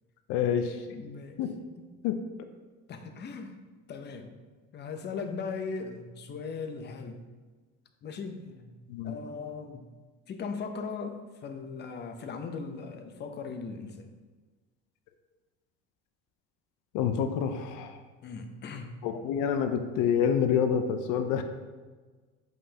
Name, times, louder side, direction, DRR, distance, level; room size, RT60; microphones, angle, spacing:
voice 1, 0.3-0.8 1.4-1.5 2.0-2.2 8.9-9.1 16.9-18.0 19.0-21.4, left 8 dB, 75° left, 7 dB, 0.6 m, -27 dB
voice 2, 0.9-1.7 2.9-4.3 4.7-7.2 8.0-8.8 9.0-9.9 10.3-14.1 18.2-19.0, left 5 dB, 35° left, 6 dB, 0.7 m, -39 dB
7.5 x 5.5 x 2.8 m, 1.3 s
cardioid pair, 135°, 31 cm